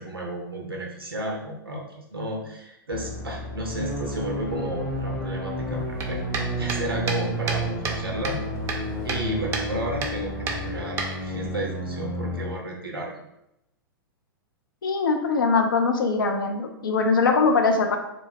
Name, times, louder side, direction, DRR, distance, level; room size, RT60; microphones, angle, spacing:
voice 1, 0.0-6.2 6.6-7.7 8.0-8.4 9.0-13.2, right 1 dB, 80° right, 0 dB, 0.5 m, -33 dB
sound 1, 2.9-10.8, left 2 dB, 40° left, 0.9 m, -37 dB
sound 2, 3.7-12.5, right 1 dB, 15° left, 0.8 m, -31 dB
sound 3, 6.0-9.3 9.5-9.7 10.0-10.2 10.5-11.5, right 4 dB, 20° right, 0.4 m, -30 dB
voice 2, 14.8-18.0, left 4 dB, 65° left, 4 dB, 0.4 m, -22 dB
2.4 x 2.2 x 3.2 m, 0.84 s
figure-of-eight pair, 100°, 12 cm